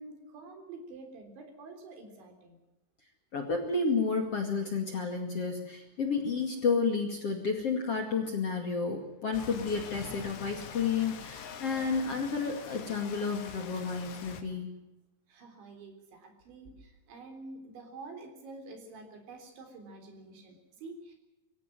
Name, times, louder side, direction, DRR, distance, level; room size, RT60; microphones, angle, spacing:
voice 1, 0.0-2.6 15.3-21.2, right 3 dB, 75° right, 5 dB, 6.0 m, -48 dB
voice 2, 3.3-14.7, left 4 dB, 40° left, 3 dB, 2.5 m, -31 dB
Rain, 9.3-14.4, left 7 dB, 70° left, 3.9 m, -45 dB
23.5 x 16.0 x 7.7 m, 0.96 s
omnidirectional pair, 5.3 m